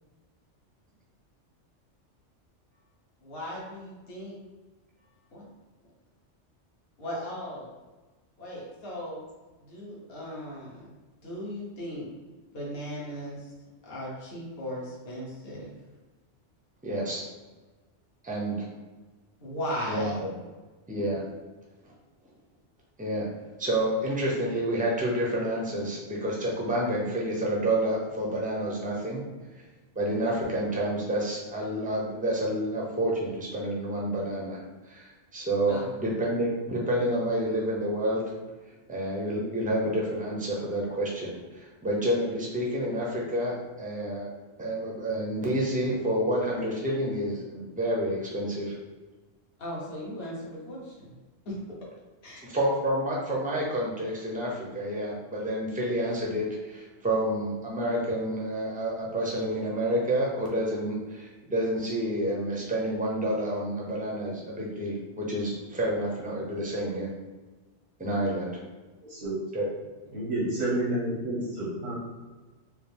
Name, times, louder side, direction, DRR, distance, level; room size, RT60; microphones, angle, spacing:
voice 1, 3.2-4.4 5.3-5.5 7.0-7.7 8.4-9.2 9.6-10.9 11.2-12.1 12.5-13.5 13.8-15.7 19.4-20.2 35.7-35.9 49.6-51.1 51.4-51.6 52.2-52.4, equal, 55° left, -5 dB, 1.2 m, -37 dB
voice 2, 16.8-17.2 18.2-18.6 19.9-20.3 20.9-21.2 23.0-23.3 23.6-29.2 30.0-34.6 34.9-38.2 38.9-44.3 44.6-48.7 52.4-67.1 68.0-68.5 69.5-69.7, right 1 dB, 10° right, -4 dB, 0.6 m, -29 dB
voice 3, 70.1-71.9, right 1 dB, 75° right, -7 dB, 1.4 m, -29 dB
4.7 x 2.0 x 3.4 m, 1.3 s
omnidirectional pair, 1.2 m